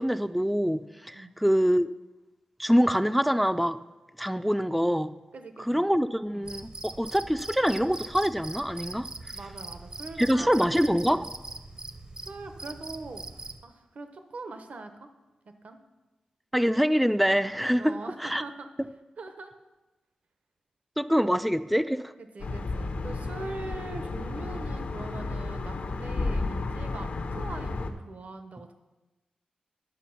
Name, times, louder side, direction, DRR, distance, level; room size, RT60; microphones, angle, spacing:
voice 1, 0.0-1.9 2.6-3.8 4.2-5.1 5.6-9.1 10.2-11.3 16.5-17.9 18.2-18.4 21.0-22.1, equal, ahead, 12 dB, 0.3 m, -25 dB
voice 2, 5.3-5.9 6.3-6.5 9.3-10.6 12.2-13.2 13.6-15.1 15.6-15.8 17.8-18.7 19.2-19.5 21.2-21.3 22.2-28.7, right 3 dB, 65° right, 7 dB, 0.9 m, -42 dB
Cricket, 6.4-13.6, right 2 dB, 35° right, 0.7 m, -42 dB
sound 1, 22.4-27.9, left 3 dB, 75° left, 0.8 m, -32 dB
10.0 x 6.0 x 5.7 m, 1.1 s
cardioid pair, 70°, 3 cm